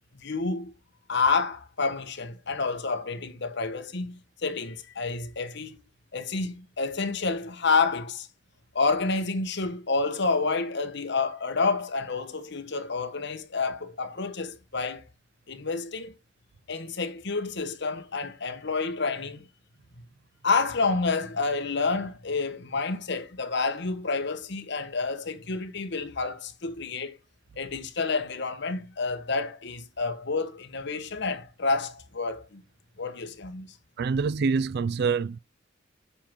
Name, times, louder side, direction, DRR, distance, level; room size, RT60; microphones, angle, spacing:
voice 1, 0.1-0.7 1.1-5.8 6.1-8.3 8.7-15.0 15.5-16.1 16.7-19.5 20.4-27.2 27.6-32.6 33.0-33.7, left 4 dB, 60° left, 1.3 m, -29 dB
voice 2, 34.0-35.4, right 5 dB, 55° right, 0.4 m, -26 dB
8.5 x 6.1 x 3.7 m
head